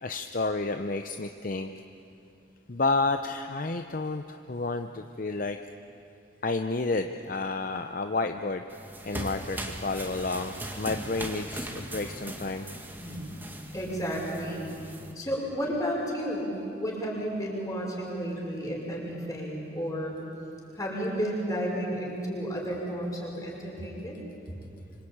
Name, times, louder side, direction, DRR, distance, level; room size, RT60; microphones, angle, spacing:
voice 1, 0.0-1.7 2.7-5.6 6.4-8.6 9.1-12.7, left 3 dB, 45° left, 7 dB, 0.7 m, -30 dB
sound 1, 8.7-15.1, right 1 dB, 10° right, 2.0 m, -39 dB
voice 2, 12.9-13.3 13.7-14.7 15.2-20.2 20.7-24.2, equal, 20° left, -2 dB, 5.8 m, -32 dB
26.0 x 25.5 x 8.8 m, 2.7 s
head